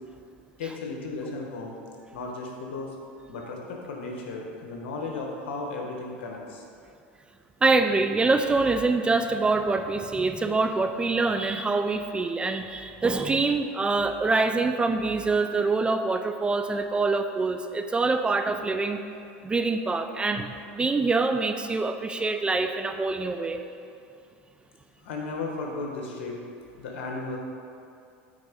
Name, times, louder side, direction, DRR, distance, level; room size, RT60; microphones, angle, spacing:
voice 1, 0.6-1.8 2.1-2.9 3.3-6.6 25.0-26.4 26.8-27.4, left 3 dB, 80° left, 0 dB, 1.5 m, -35 dB
voice 2, 7.6-19.0 19.4-23.6, right 3 dB, 15° right, 7 dB, 0.4 m, -25 dB
8.0 x 4.6 x 5.2 m, 2.5 s
hypercardioid pair, 100°, 6 cm